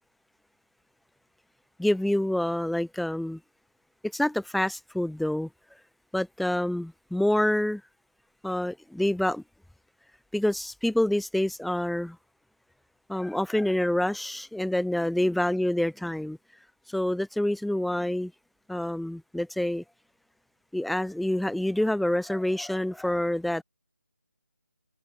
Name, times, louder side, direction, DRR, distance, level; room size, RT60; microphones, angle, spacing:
voice 1, 1.8-3.4 4.1-5.5 6.1-7.8 8.4-9.4 10.3-12.2 13.1-16.4 16.9-18.3 18.7-19.8 20.7-23.6, left 1 dB, ahead, 5.8 m, -27 dB
open air
figure-of-eight pair, 160°, 9 cm